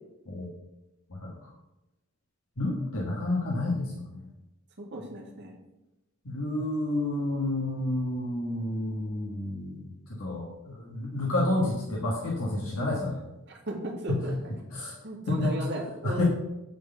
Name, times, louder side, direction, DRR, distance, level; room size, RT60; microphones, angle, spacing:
voice 1, 2.6-4.2 6.2-13.2 14.1-14.2 14.7-15.0 15.3-15.5 16.0-16.2, left 2 dB, 70° left, -3 dB, 1.6 m, -30 dB
voice 2, 4.8-5.6 13.5-14.3 15.0-16.2, right 2 dB, 50° right, -1 dB, 2.1 m, -35 dB
9.3 x 4.3 x 6.8 m, 0.96 s
head